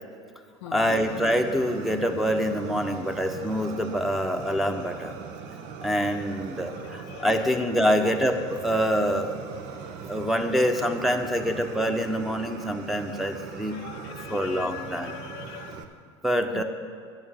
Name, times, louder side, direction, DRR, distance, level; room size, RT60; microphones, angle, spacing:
voice 1, 0.7-5.2 5.8-9.4 10.1-13.8 14.3-15.2 16.2-16.6, equal, ahead, 5 dB, 1.1 m, -26 dB
Fire, 0.8-15.8, right 6 dB, 60° right, 1.0 m, -40 dB
voice 2, 6.7-7.5 13.7-15.9 16.5-16.6, left 14 dB, 70° left, 9 dB, 0.5 m, -42 dB
11.0 x 6.4 x 9.0 m, 2.2 s
hypercardioid pair, 75°, 15 cm